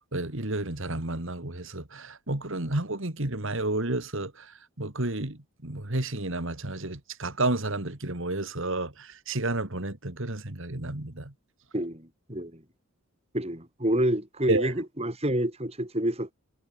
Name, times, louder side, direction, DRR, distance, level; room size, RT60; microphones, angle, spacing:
voice 1, 0.1-4.5 4.8-11.3 14.5-14.7, right 2 dB, 60° right, 2.3 m, -31 dB
voice 2, 11.7-12.6 13.3-16.3, right 1 dB, 30° right, 5.3 m, -28 dB
head